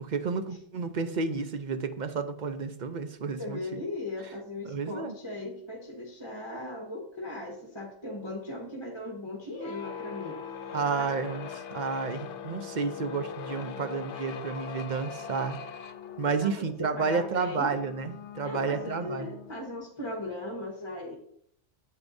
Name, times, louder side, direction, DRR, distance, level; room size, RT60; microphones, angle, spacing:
voice 1, 0.0-3.8 4.6-5.2 6.5-6.6 10.7-15.6 16.2-19.3, right 5 dB, 50° right, 9 dB, 0.6 m, -31 dB
voice 2, 3.4-11.2 16.4-17.7 18.4-21.1, left 2 dB, 20° left, -1 dB, 1.4 m, -38 dB
sound 1, 9.5-19.9, left 7 dB, 70° left, 0.9 m, -41 dB
9.3 x 7.6 x 2.6 m, 0.68 s
omnidirectional pair, 1.3 m